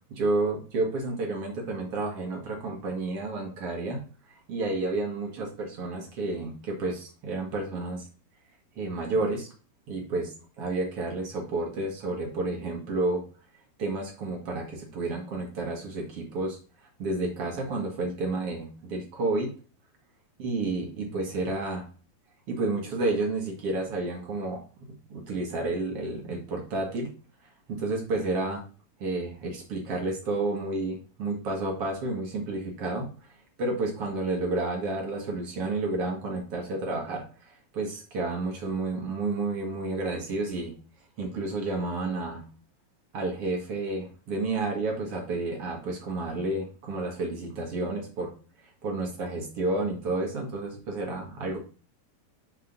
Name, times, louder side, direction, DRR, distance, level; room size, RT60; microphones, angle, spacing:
voice 1, 0.1-8.1 8.8-9.5 9.9-13.2 13.8-19.5 20.4-21.9 22.5-27.1 27.7-28.6 29.0-40.7 41.2-42.4 43.1-48.3 48.8-51.6, right 2 dB, 45° right, 0 dB, 2.3 m, -31 dB
6.9 x 4.6 x 3.9 m, 0.37 s
omnidirectional pair, 4.3 m